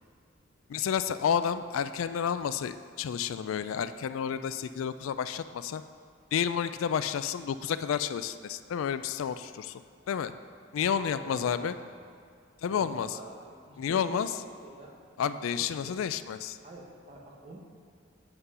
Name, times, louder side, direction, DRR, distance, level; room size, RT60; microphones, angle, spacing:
voice 1, 0.7-5.8 6.3-9.8 10.1-10.3 10.7-11.7 12.6-13.1 13.8-14.3 15.2-16.6, left 8 dB, 80° left, 12 dB, 0.3 m, -30 dB
voice 2, 10.8-12.1 12.7-15.0 15.5-16.0 16.6-17.6, right 2 dB, 30° right, -2 dB, 1.2 m, -47 dB
7.9 x 5.9 x 5.5 m, 2.3 s
head